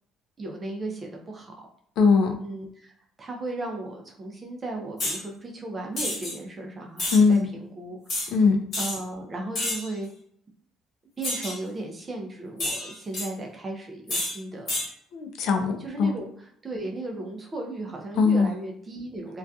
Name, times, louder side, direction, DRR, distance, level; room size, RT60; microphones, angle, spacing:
voice 1, 0.4-1.7 2.4-2.9 3.2-8.3 8.8-10.1 11.2-14.7 15.8-19.4, right 2 dB, 20° right, 1 dB, 0.4 m, -36 dB
voice 2, 2.0-2.3 7.1-7.5 8.3-8.6 15.1-16.1 18.2-18.5, left 4 dB, 65° left, 5 dB, 0.4 m, -20 dB
sound 1, 5.0-5.2 6.0-6.3 7.0-7.2 8.1-8.3 8.7-9.0 9.5-9.9 11.2-11.6 12.6-13.3 14.1-14.3 14.7-14.9, left 1 dB, 35° left, 1.2 m, -29 dB
2.6 x 2.3 x 2.3 m, 0.66 s
cardioid pair, 170°, 0 cm